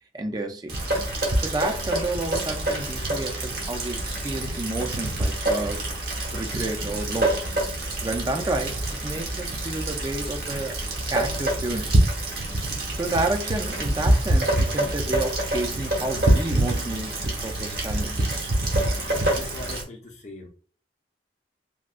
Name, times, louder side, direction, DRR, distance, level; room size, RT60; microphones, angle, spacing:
voice 1, 0.1-0.7 1.4-5.9 6.3-7.4 8.0-10.8 11.1-12.0 13.0-17.1 17.4-18.2, right 2 dB, 20° right, 0.4 m, -30 dB
Rain, 0.7-19.8, right 1 dB, 55° right, 0.9 m, -26 dB
voice 2, 19.0-20.5, left 2 dB, 40° left, 0.6 m, -41 dB
3.5 x 2.2 x 2.4 m
head